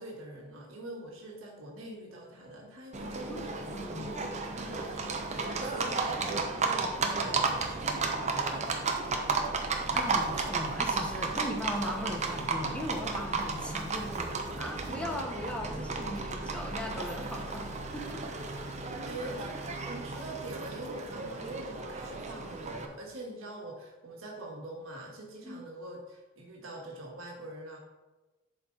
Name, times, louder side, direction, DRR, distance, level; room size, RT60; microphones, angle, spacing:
voice 1, 0.0-9.6 19.1-27.8, right 1 dB, 75° right, -1 dB, 1.5 m, -44 dB
Livestock farm animals working animals, 2.9-22.8, right 4 dB, 35° right, 0.8 m, -33 dB
voice 2, 3.3-4.1 9.8-18.2 25.4-25.6, left 1 dB, 5° left, 2 dB, 1.0 m, -38 dB
11.0 x 4.6 x 3.9 m, 1.1 s
head